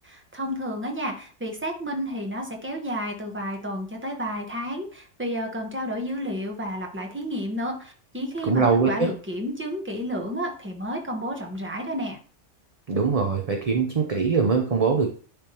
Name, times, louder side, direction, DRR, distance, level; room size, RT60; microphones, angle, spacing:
voice 1, 0.0-12.2, equal, 10° right, 1 dB, 1.0 m, -31 dB
voice 2, 8.4-9.1 12.9-15.1, right 5 dB, 40° right, 3 dB, 0.6 m, -22 dB
10.0 x 3.5 x 2.9 m, 0.41 s
omnidirectional pair, 1.3 m